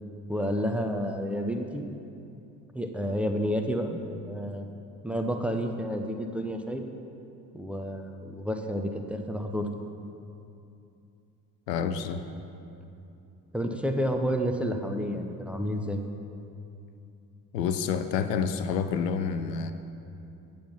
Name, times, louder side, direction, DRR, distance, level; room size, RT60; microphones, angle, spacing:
voice 1, 0.3-1.8 2.7-4.0 4.3-4.7 5.0-6.8 7.5-9.7 13.5-16.0, equal, 5° right, 4 dB, 0.7 m, -30 dB
voice 2, 11.7-12.2 17.5-19.7, left 6 dB, 85° left, 9 dB, 0.6 m, -28 dB
8.7 x 7.6 x 5.6 m, 2.7 s
figure-of-eight pair, 55°, 48 cm